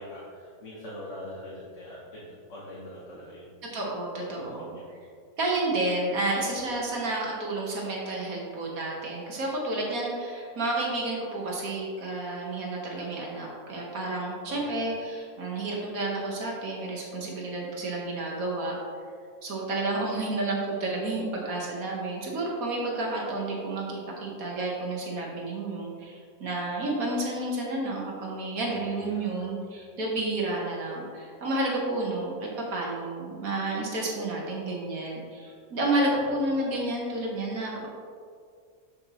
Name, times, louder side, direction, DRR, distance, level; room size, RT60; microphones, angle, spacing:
voice 1, 0.0-3.5 4.2-4.8 14.5-14.8 28.6-29.5 36.1-36.5, left 1 dB, 60° left, -7 dB, 1.4 m, -43 dB
voice 2, 3.7-4.7 5.4-18.8 19.4-37.9, right 2 dB, 75° right, -2 dB, 1.6 m, -30 dB
7.8 x 7.0 x 2.9 m, 2.2 s
omnidirectional pair, 1.5 m